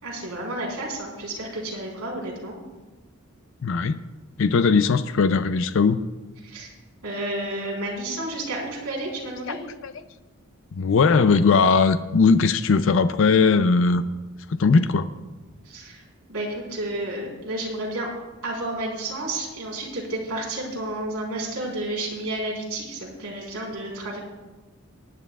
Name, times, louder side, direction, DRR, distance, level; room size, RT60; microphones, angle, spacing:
voice 1, 0.0-2.6 6.4-6.7 7.0-9.6 15.6-16.0 16.3-18.1 18.4-24.2, right 1 dB, 80° right, -3 dB, 4.1 m, -31 dB
voice 2, 3.6-4.0 4.4-6.0 9.5-9.6 9.8-9.9 10.7-14.0 14.5-15.1, left 4 dB, 60° left, 11 dB, 0.4 m, -19 dB
19.0 x 10.5 x 2.4 m, 1.2 s
head